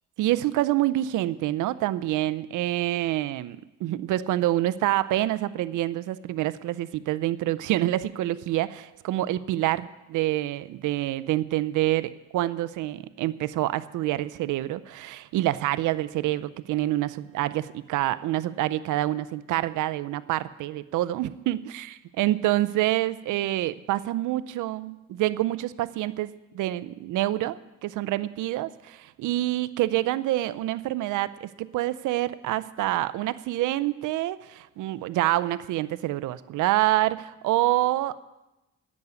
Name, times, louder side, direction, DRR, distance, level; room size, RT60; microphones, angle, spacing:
voice 1, 0.2-38.2, right 15 dB, 85° right, 15 dB, 0.6 m, -27 dB
10.5 x 8.3 x 9.6 m, 1.0 s
cardioid pair, 90°, 30 cm